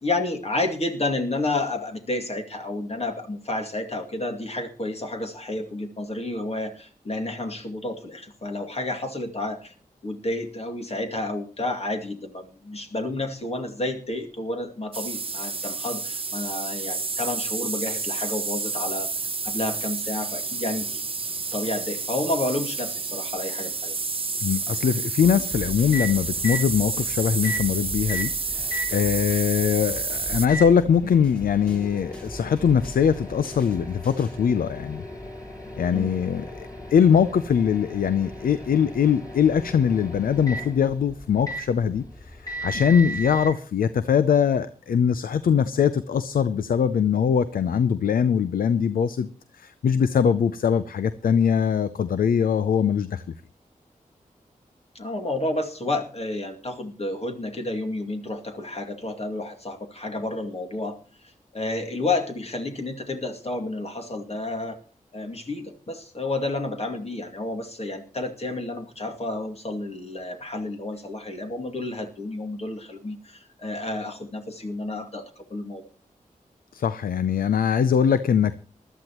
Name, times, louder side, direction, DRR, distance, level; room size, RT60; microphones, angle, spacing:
voice 1, 0.0-9.7 10.0-21.0 21.5-23.9 35.9-36.2 54.9-64.8 65.1-75.8, left 2 dB, 45° left, 3 dB, 2.3 m, -30 dB
sound 1, 14.9-30.5, right 4 dB, 40° right, 0.7 m, -30 dB
voice 2, 24.4-28.3 28.9-35.0 35.8-49.3 49.5-53.2 76.7-78.6, left 7 dB, 85° left, 14 dB, 0.5 m, -22 dB
sound 2, 25.2-29.6 29.9-34.5, right 1 dB, 10° left, 2.4 m, -42 dB
Microwave oven, 25.5-43.5, right 1 dB, 25° left, 7.5 m, -37 dB
20.0 x 12.5 x 3.0 m, 0.38 s
cardioid pair, 55°, 14 cm